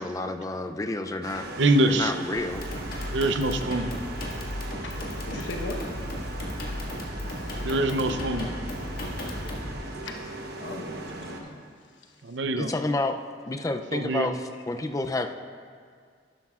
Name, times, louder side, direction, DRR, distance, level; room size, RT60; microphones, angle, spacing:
voice 1, 0.0-1.5 1.9-2.6 12.5-13.1 13.5-14.4 14.7-15.3, left 2 dB, 20° left, 7 dB, 0.4 m, -29 dB
sound 1, 1.2-11.4, right 1 dB, 60° right, 1.0 m, -39 dB
voice 2, 1.3-2.1 3.1-3.9 7.6-8.5 12.2-12.7 13.9-14.3, right 2 dB, 80° right, 8 dB, 0.6 m, -24 dB
sound 2, 2.5-9.7, left 1 dB, 55° left, 1.7 m, -35 dB
voice 3, 4.8-5.8 7.6-7.7 8.8-9.4 10.0-10.2 10.6-11.6 12.0-12.1, left 2 dB, 85° left, 3 dB, 1.0 m, -39 dB
11.5 x 11.5 x 2.4 m, 2.1 s
head